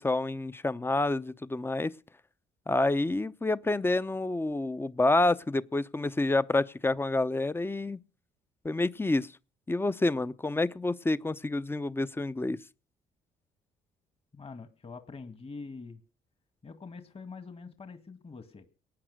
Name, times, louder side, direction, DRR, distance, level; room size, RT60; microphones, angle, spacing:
voice 1, 0.0-1.9 2.7-8.0 8.6-9.3 9.7-12.6, left 2 dB, 15° left, 0.7 m, -28 dB
voice 2, 14.3-16.0 16.6-18.7, left 4 dB, 35° left, 2.0 m, -45 dB
18.5 x 9.1 x 6.4 m
supercardioid pair, 60°, 17 cm